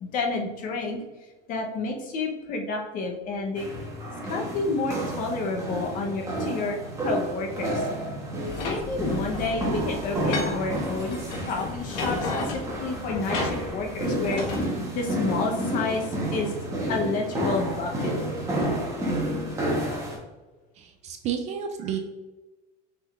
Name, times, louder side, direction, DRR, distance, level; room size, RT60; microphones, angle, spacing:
voice 1, 0.0-1.0 1.5-3.7 4.2-7.9 8.6-11.2 11.5-16.5 16.9-18.2, left 3 dB, 40° left, 2 dB, 0.8 m, -30 dB
sound 1, 3.6-20.2, right 1 dB, 15° right, 1.0 m, -30 dB
sound 2, 8.5-14.7, left 3 dB, 80° left, 1.4 m, -33 dB
voice 2, 20.8-22.0, right 8 dB, 35° right, 6 dB, 0.4 m, -31 dB
5.9 x 3.6 x 2.4 m, 1.2 s
cardioid pair, 165°, 21 cm